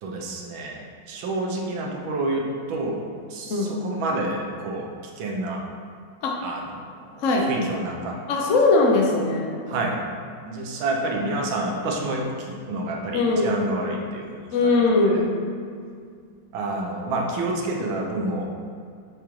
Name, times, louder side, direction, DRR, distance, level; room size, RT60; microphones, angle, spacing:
voice 1, 0.0-3.0 3.3-4.9 5.2-5.6 6.4-8.2 9.7-10.0 10.5-15.2 16.5-18.5, right 2 dB, 80° right, -1 dB, 1.6 m, -29 dB
voice 2, 8.3-9.6 13.1-13.6 14.5-15.3, left 3 dB, 70° left, -1 dB, 0.7 m, -20 dB
8.5 x 3.7 x 3.1 m, 2.2 s
omnidirectional pair, 2.1 m